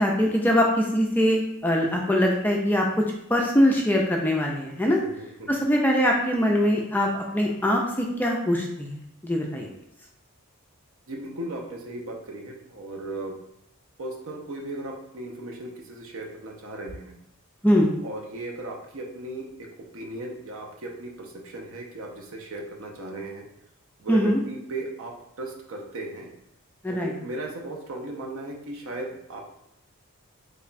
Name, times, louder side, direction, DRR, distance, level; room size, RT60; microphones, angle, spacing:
voice 1, 0.0-3.1 3.3-5.0 5.5-9.0 9.2-9.7 17.6-17.9 24.1-24.4 26.8-27.1, equal, 10° left, 0 dB, 0.3 m, -22 dB
voice 2, 5.0-5.6 11.1-13.4 14.0-17.1 18.0-19.7 19.9-23.5 24.0-26.3 26.9-29.4, right 2 dB, 70° right, 1 dB, 0.7 m, -36 dB
3.3 x 2.2 x 3.9 m, 0.81 s
head